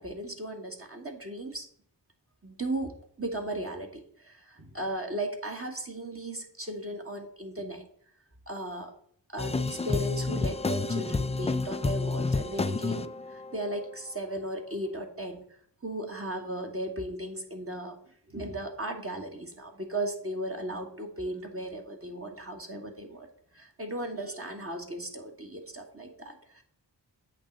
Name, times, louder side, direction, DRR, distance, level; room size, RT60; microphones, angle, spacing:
voice 1, 0.0-1.7 2.4-2.9 3.2-7.8 8.5-8.9 9.3-15.4 15.8-18.0 18.3-23.3 23.5-26.6, right 1 dB, 30° right, 2 dB, 1.4 m, -36 dB
sound 1, 9.4-13.9, left 3 dB, 15° left, 0.3 m, -30 dB
8.3 x 3.1 x 6.4 m, 0.63 s
wide cardioid pair, 50°, 43 cm